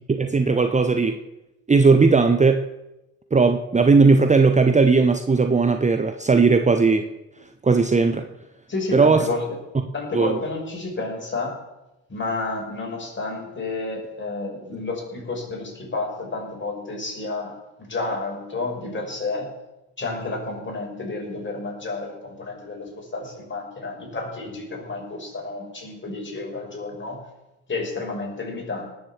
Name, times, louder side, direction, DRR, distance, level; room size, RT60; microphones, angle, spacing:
voice 1, 0.1-1.2 1.7-2.6 3.3-7.1 7.6-8.3 8.9-9.3 10.1-10.4, right 4 dB, 15° right, 8 dB, 1.0 m, -17 dB
voice 2, 8.7-9.6 9.9-11.6 12.1-19.5 20.0-27.3 27.7-28.9, left 3 dB, 30° left, 0 dB, 6.1 m, -30 dB
19.0 x 7.3 x 7.4 m, 0.97 s
hypercardioid pair, 60°, 40 cm